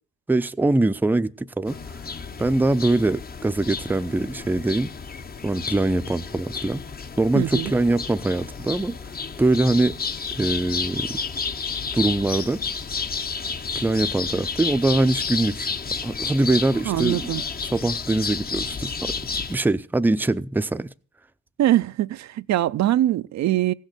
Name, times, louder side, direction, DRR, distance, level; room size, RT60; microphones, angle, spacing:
voice 1, 0.3-1.8 2.4-4.9 5.4-6.8 7.2-9.0 9.4-10.0 10.4-11.2 11.9-12.6 13.7-15.7 16.0-17.3 17.7-19.1 19.5-20.9, right 2 dB, 5° right, 0.5 m, -23 dB
sound 1, 1.7-19.6, left 5 dB, 30° left, 0.8 m, -31 dB
voice 2, 7.3-7.7 16.9-17.4 21.6-23.7, right 13 dB, 65° right, 0.5 m, -22 dB
16.0 x 6.5 x 8.1 m
cardioid pair, 90°, 30 cm